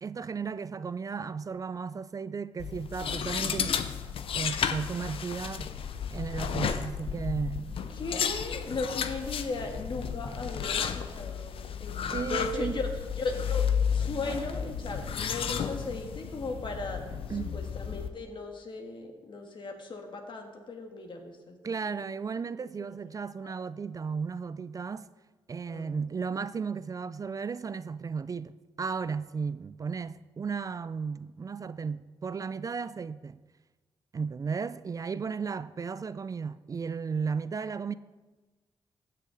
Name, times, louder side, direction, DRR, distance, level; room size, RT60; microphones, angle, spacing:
voice 1, 0.0-3.8 4.3-5.7 6.1-7.8 12.1-12.8 17.3-17.6 21.6-25.1 25.5-28.5 28.8-33.4 34.1-37.9, right 5 dB, 40° right, 0.3 m, -34 dB
sound 1, 2.6-18.1, left 7 dB, 75° left, 0.6 m, -33 dB
voice 2, 7.9-12.9 13.1-13.7 13.9-17.0 17.3-21.6 21.8-22.1 22.7-22.8 23.4-23.5 25.7-26.0, left 3 dB, 55° left, 1.8 m, -37 dB
15.0 x 6.6 x 3.9 m
cardioid pair, 70°, 10 cm